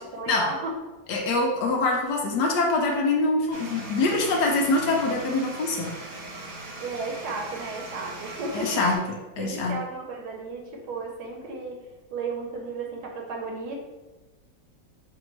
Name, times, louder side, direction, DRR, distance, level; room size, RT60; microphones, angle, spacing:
voice 1, 0.1-0.7 6.8-8.8 9.4-11.8 12.1-13.8, right 3 dB, 70° right, 0 dB, 1.3 m, -34 dB
voice 2, 1.1-5.9 8.5-9.7, left 2 dB, 70° left, 0 dB, 1.2 m, -24 dB
sound 1, 3.5-9.0, right 2 dB, 50° right, 1.1 m, -39 dB
6.1 x 2.6 x 3.1 m, 1.1 s
omnidirectional pair, 2.0 m